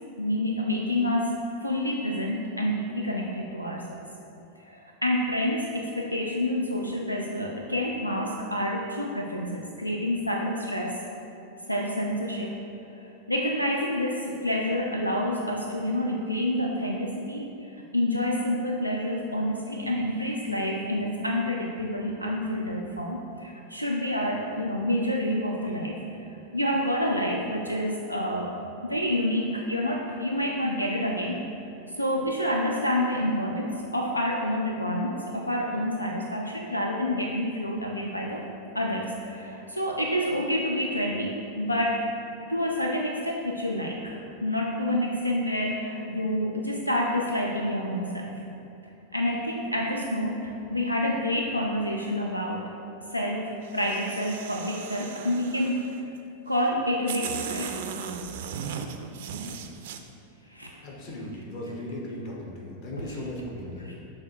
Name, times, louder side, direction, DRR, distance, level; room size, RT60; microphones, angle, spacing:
voice 1, 0.2-4.0 4.6-11.0 11.7-12.6 13.0-26.0 26.5-28.5 28.8-31.4 32.0-38.4 38.7-42.1 42.5-48.3 49.1-52.7 53.1-55.8 56.5-57.8 60.5-60.9 63.0-63.2 63.8-64.0, left 1 dB, 90° left, -1 dB, 0.4 m, -28 dB
sound 1, 53.6-56.0 56.7-56.8 57.1-60.0, right 7 dB, 55° right, 0.4 m, -37 dB
voice 2, 60.8-63.9, left 1 dB, 45° left, -2 dB, 1.2 m, -37 dB
6.6 x 3.4 x 4.4 m, 2.9 s
figure-of-eight pair, 90°, 0 cm